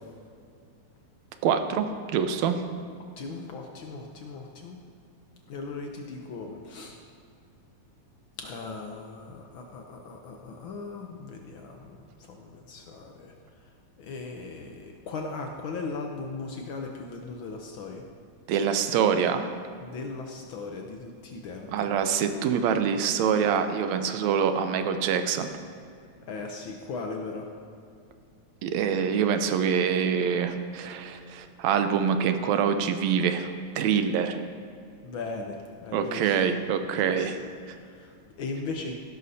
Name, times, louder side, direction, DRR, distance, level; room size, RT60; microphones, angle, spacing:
voice 1, 1.4-2.6 18.5-19.5 21.7-25.5 28.6-34.4 35.9-37.4 37.7-37.8, right 7 dB, 75° right, 8 dB, 1.9 m, -25 dB
voice 2, 3.2-4.8 5.5-7.0 8.4-13.3 14.0-18.0 19.8-21.9 26.3-27.5 35.0-36.5 37.0-37.3 37.8-38.9, left 3 dB, 85° left, 2 dB, 1.1 m, -38 dB
16.5 x 11.5 x 2.8 m, 2.3 s
omnidirectional pair, 3.3 m